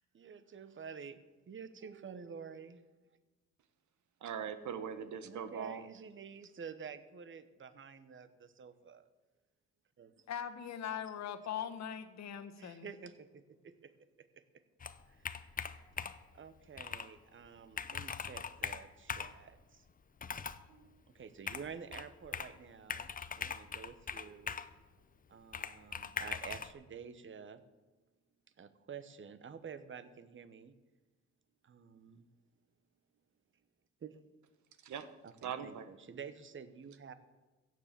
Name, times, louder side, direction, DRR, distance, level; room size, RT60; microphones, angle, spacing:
voice 1, 0.2-1.1 1.5-2.8 5.2-8.3 8.6-9.0 10.0-10.1 12.6-13.1 16.4-18.9 19.2-19.5 21.2-23.1 23.4-24.5 25.3-27.6 28.6-30.7 31.7-32.2 34.0-34.1 35.2-37.1, right 6 dB, 40° right, 13 dB, 1.1 m, -49 dB
voice 2, 4.2-5.8 34.8-35.1 35.4-35.9, right 7 dB, 70° right, 11 dB, 1.2 m, -41 dB
voice 3, 10.3-12.9, left 9 dB, 60° left, 8 dB, 1.4 m, -41 dB
Computer keyboard, 14.8-16.3 16.8-17.1 17.4-17.5 17.7-19.4 20.2-20.7 21.5-22.6 22.9-24.7 25.5-26.7, left 6 dB, 30° left, 0.7 m, -41 dB
16.0 x 7.7 x 7.5 m, 1.2 s
cardioid pair, 90°, 30 cm